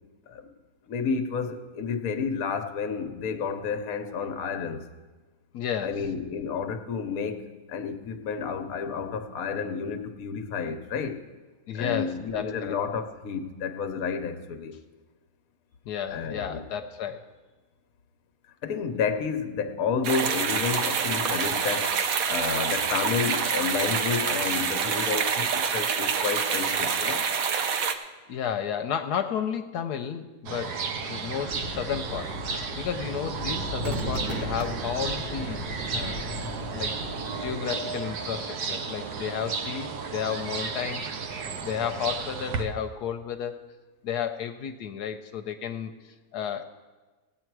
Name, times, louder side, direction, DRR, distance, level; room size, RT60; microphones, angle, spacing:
voice 1, 0.9-4.8 5.8-11.2 11.7-14.8 16.1-16.7 18.6-27.3, left 6 dB, 65° left, 8 dB, 1.3 m, -31 dB
voice 2, 5.5-6.0 11.7-12.8 15.9-17.3 28.3-32.3 32.7-35.7 35.9-36.4 36.7-37.0 37.3-43.7 44.0-46.6, left 8 dB, 85° left, 7 dB, 1.2 m, -32 dB
sound 1, 20.0-27.9, right 6 dB, 65° right, 1.1 m, -26 dB
sound 2, 30.5-42.7, right 5 dB, 80° right, 1.4 m, -34 dB
sound 3, 31.5-37.5, left 1 dB, 40° right, 1.5 m, -35 dB
17.0 x 8.7 x 4.6 m, 1.3 s
omnidirectional pair, 1.7 m